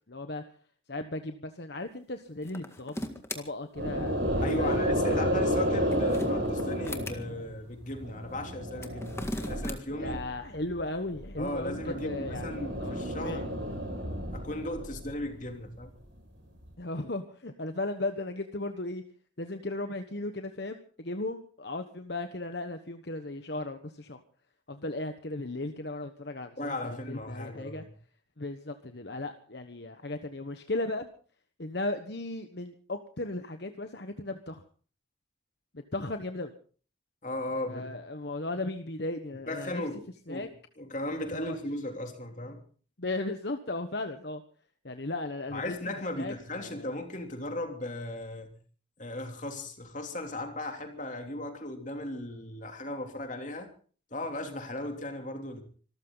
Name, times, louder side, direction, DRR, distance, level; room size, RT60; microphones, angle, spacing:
voice 1, 0.1-0.4 0.9-3.0 3.3-4.8 5.0-5.2 10.0-12.5 12.8-13.4 16.8-19.0 19.4-24.2 24.7-27.8 28.4-31.1 31.6-34.6 35.7-36.5 37.7-39.8 40.3-40.5 41.5-41.6 43.0-44.4 44.8-45.7 46.2-46.9, left 2 dB, 55° left, 1.2 m, -36 dB
sound 1, 2.4-3.4 5.7-7.2 8.7-9.8, left 1 dB, 15° left, 1.9 m, -38 dB
sound 2, 3.8-7.5 7.9-10.2 10.6-15.4, equal, 70° right, 5.9 m, -31 dB
voice 2, 4.4-10.2 11.4-13.5 14.3-15.9 26.6-27.8 37.2-37.9 39.5-40.5 40.8-42.6 45.5-48.6 49.0-53.7 54.1-55.6, left 1 dB, 40° left, 3.1 m, -36 dB
25.5 x 14.0 x 4.0 m
head